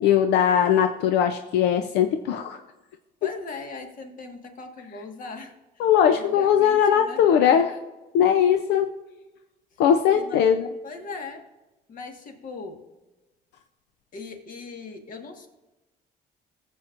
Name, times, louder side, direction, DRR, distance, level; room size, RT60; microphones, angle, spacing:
voice 1, 0.0-2.6 5.8-7.7 8.1-8.9 9.8-10.7, left 8 dB, 90° left, 7 dB, 0.6 m, -20 dB
voice 2, 3.2-7.6 8.1-8.6 9.7-9.8 10.1-10.5 10.8-11.5 11.9-12.8 14.1-15.5, left 4 dB, 55° left, 4 dB, 1.6 m, -39 dB
17.0 x 7.4 x 2.5 m, 1.1 s
cardioid pair, 110°, 17 cm